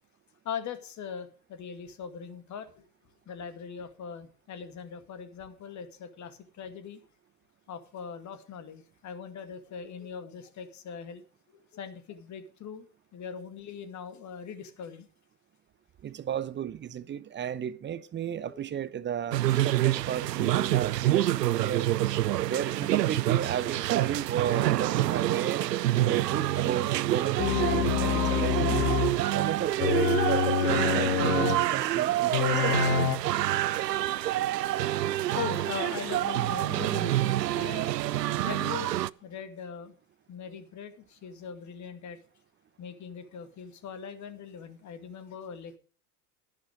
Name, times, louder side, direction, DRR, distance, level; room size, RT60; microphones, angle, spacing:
voice 1, 0.4-2.8 3.3-7.0 7.7-11.2 11.7-12.9 13.1-15.1 18.4-18.6 28.8-28.9 29.5-30.1 31.8-32.2 34.0-34.3 35.2-37.9 38.4-39.9 40.3-42.2 42.8-45.8, left 7 dB, 35° left, 2.2 m, -41 dB
voice 2, 16.0-21.9 22.4-25.7 25.9-28.8 29.3-33.0, right 9 dB, 25° right, 0.8 m, -33 dB
sound 1, 19.3-39.1, right 14 dB, 85° right, 0.5 m, -27 dB
sound 2, 27.4-29.2 29.8-31.7 32.3-33.2, left 11 dB, 70° left, 1.2 m, -27 dB
11.5 x 11.5 x 5.1 m
hypercardioid pair, 85°, 48 cm